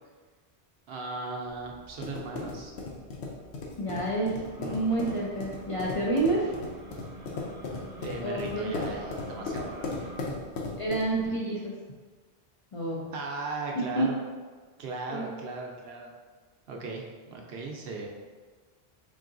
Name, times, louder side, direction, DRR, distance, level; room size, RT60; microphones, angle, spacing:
voice 1, 0.9-2.7 8.0-10.1 13.1-14.2 14.8-16.1 16.7-18.1, right 3 dB, 70° right, 1 dB, 0.8 m, -37 dB
sound 1, 1.6-11.2, left 3 dB, 85° left, 0.9 m, -37 dB
voice 2, 3.8-6.5 8.2-8.7 10.8-11.7 12.7-13.1 13.7-14.1 15.1-15.2, right 2 dB, 45° left, -4 dB, 0.4 m, -29 dB
sound 2, 4.4-10.2, equal, 30° right, 0.4 m, -47 dB
4.0 x 3.7 x 2.5 m, 1.4 s
omnidirectional pair, 1.1 m